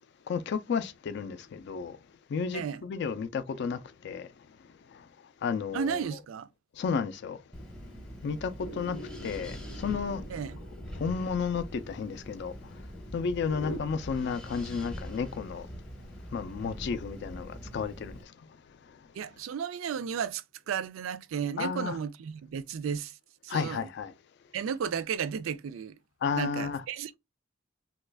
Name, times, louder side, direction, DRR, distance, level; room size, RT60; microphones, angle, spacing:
voice 1, 0.3-2.0 2.3-4.3 4.9-5.0 5.4-6.1 6.8-7.4 8.2-10.2 11.0-12.5 13.1-15.7 16.3-18.3 21.6-22.0 23.5-24.1 26.2-26.8, left 5 dB, 60° left, 0.3 m, -32 dB
voice 2, 5.7-6.5 10.3-10.6 19.1-23.2 23.4-23.9 24.5-25.9 26.3-27.1, right 7 dB, 90° right, 0.3 m, -33 dB
Wind, 7.5-18.2, equal, 5° left, 0.6 m, -43 dB
sound 1, 8.6-13.8, left 1 dB, 85° left, 0.7 m, -45 dB
3.0 x 2.3 x 3.3 m
head